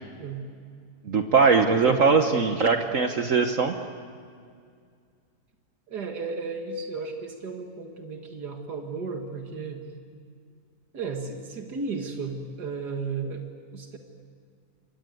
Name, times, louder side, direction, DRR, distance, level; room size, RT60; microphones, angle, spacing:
voice 1, 1.1-3.7, right 5 dB, 55° right, 6 dB, 1.4 m, -21 dB
voice 2, 1.7-2.0 5.9-9.8 10.9-14.0, right 4 dB, 85° right, 3 dB, 2.4 m, -34 dB
27.0 x 23.5 x 9.2 m, 2.2 s
omnidirectional pair, 1.7 m